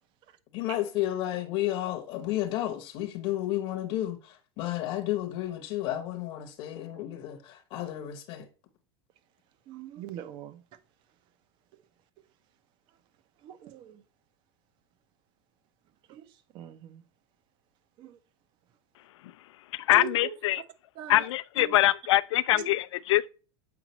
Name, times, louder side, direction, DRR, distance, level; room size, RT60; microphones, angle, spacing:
voice 1, 0.5-8.5, left 13 dB, 40° left, 0.8 m, -32 dB
voice 2, 9.7-10.6 13.4-14.0 16.1-16.3 16.5-17.0 18.0-18.2 19.9-20.3 21.0-21.3 21.6-21.8 22.5-22.7, right 10 dB, 35° right, 0.7 m, -41 dB
voice 3, 19.9-20.6 21.1-23.3, left 16 dB, 85° left, 0.4 m, -23 dB
7.8 x 4.9 x 3.0 m
supercardioid pair, 160°, 15 cm